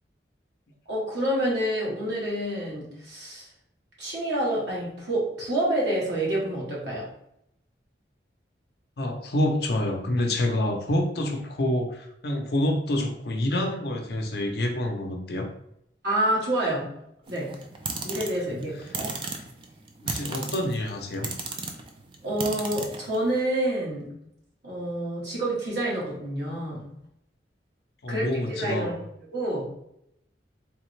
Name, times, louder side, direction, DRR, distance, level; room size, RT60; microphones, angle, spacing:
voice 1, 0.9-3.5 4.0-7.1 16.0-17.0 17.3-17.6 18.0-19.2 22.2-24.2 24.6-26.9 28.1-29.0 29.3-29.7, right 1 dB, 70° right, -4 dB, 1.5 m, -28 dB
voice 2, 9.0-15.5 20.0-21.3 28.0-28.9, left 1 dB, 60° left, 3 dB, 0.7 m, -27 dB
sound 1, 17.3-23.4, right 3 dB, 30° right, 0.4 m, -35 dB
3.5 x 3.3 x 3.1 m, 0.77 s
head